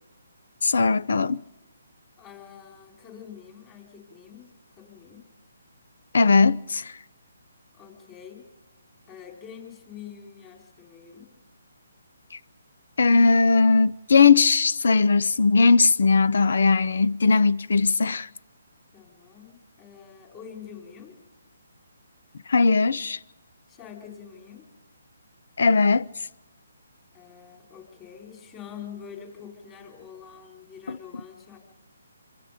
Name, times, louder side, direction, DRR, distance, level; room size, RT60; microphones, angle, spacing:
voice 1, 0.6-1.4 6.1-6.9 13.0-18.3 22.5-23.2 25.6-26.0 30.9-31.0, left 4 dB, 65° left, 0.7 m, -19 dB
voice 2, 2.2-4.5 4.8-5.2 7.7-8.5 9.1-11.3 18.9-21.2 23.7-24.7 27.1-31.6, left 8 dB, 20° left, 4.9 m, -45 dB
26.0 x 26.0 x 5.2 m
hypercardioid pair, 150°, 0 cm